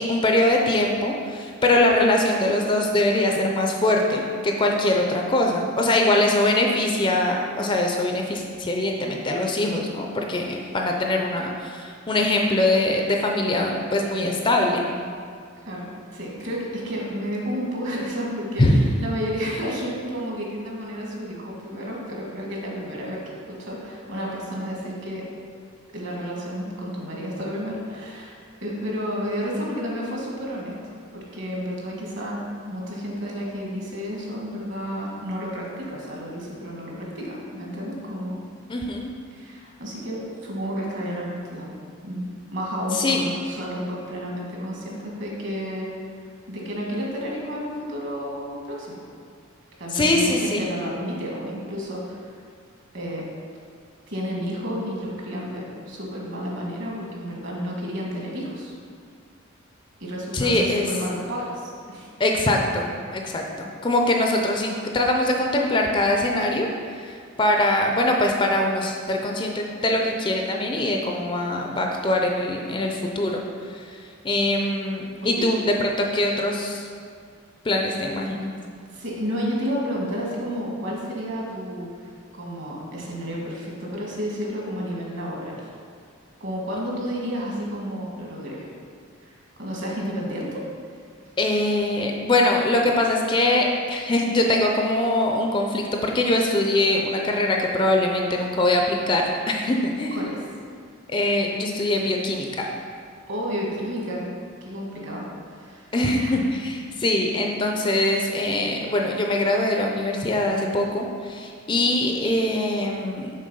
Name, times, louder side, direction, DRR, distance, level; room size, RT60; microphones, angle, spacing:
voice 1, 0.0-14.9 18.6-18.8 38.7-39.1 42.9-43.3 49.9-50.6 60.3-60.9 62.2-73.4 73.7-74.0 74.2-76.9 77.6-78.5 91.4-100.3 101.1-102.7 105.9-113.3, left 1 dB, 25° left, 2 dB, 0.4 m, -22 dB
voice 2, 15.7-23.2 23.5-25.2 25.9-28.3 28.6-38.4 39.3-41.7 42.0-45.9 46.5-49.0 49.8-52.2 52.9-53.2 54.1-58.7 60.0-62.1 75.2-75.3 78.9-81.9 82.3-85.6 86.4-88.7 89.2-89.3 89.6-90.6 100.1-100.4 103.3-104.3 104.6-105.2 105.5-105.9 106.2-106.3, equal, 55° right, -3 dB, 1.5 m, -31 dB
6.4 x 3.9 x 5.4 m, 2.1 s
head